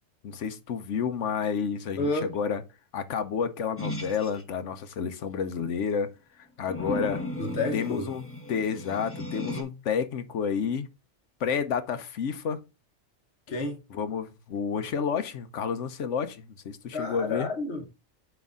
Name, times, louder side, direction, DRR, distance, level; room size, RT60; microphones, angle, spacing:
voice 1, 0.2-2.6 2.9-7.2 7.7-10.9 11.4-12.6 13.9-17.5, left 6 dB, 75° left, 1.1 m, -30 dB
voice 2, 2.0-2.4 7.4-8.1 13.5-13.8 16.9-17.8, left 2 dB, 60° left, 1.3 m, -30 dB
sound 1, 3.8-4.4 6.7-9.6, left 1 dB, 10° left, 1.0 m, -35 dB
9.2 x 3.5 x 3.7 m
omnidirectional pair, 1.3 m